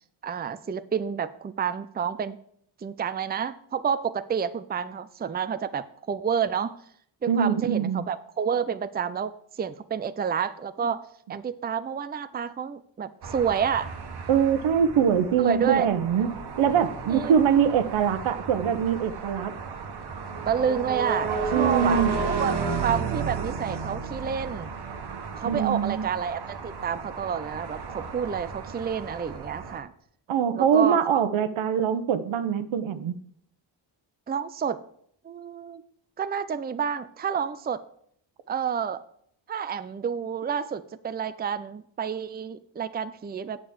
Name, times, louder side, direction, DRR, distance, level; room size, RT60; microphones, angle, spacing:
voice 1, 0.2-2.4 2.8-6.7 7.2-11.0 11.3-13.9 15.4-15.9 17.1-17.3 20.5-22.5 22.8-24.7 25.4-29.9 30.5-31.2 34.3-34.8 35.2-35.8 36.2-37.8 38.5-39.0 39.5-43.6, right 7 dB, 20° right, 0.5 m, -29 dB
voice 2, 7.3-8.1 14.3-16.3 16.6-19.6 21.5-22.1 25.4-26.1 30.3-33.1, right 8 dB, 80° right, 0.9 m, -23 dB
sound 1, 13.2-29.8, right 5 dB, 55° right, 1.3 m, -33 dB
8.5 x 5.2 x 7.3 m
cardioid pair, 75°, 47 cm